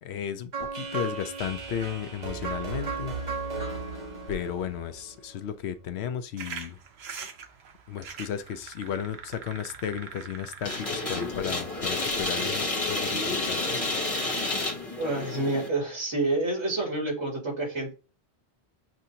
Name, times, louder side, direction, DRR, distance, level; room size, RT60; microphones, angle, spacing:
voice 1, 0.0-3.1 4.3-6.8 7.9-13.8, left 8 dB, 75° left, 0.8 m, -34 dB
sound 1, 0.5-5.5, right 4 dB, 40° right, 1.1 m, -35 dB
sound 2, 6.4-12.5, right 6 dB, 70° right, 1.0 m, -43 dB
sound 3, 10.6-15.7, left 2 dB, 35° left, 1.0 m, -30 dB
voice 2, 15.0-17.9, right 2 dB, 85° right, 2.7 m, -28 dB
7.4 x 2.6 x 2.7 m
omnidirectional pair, 1.1 m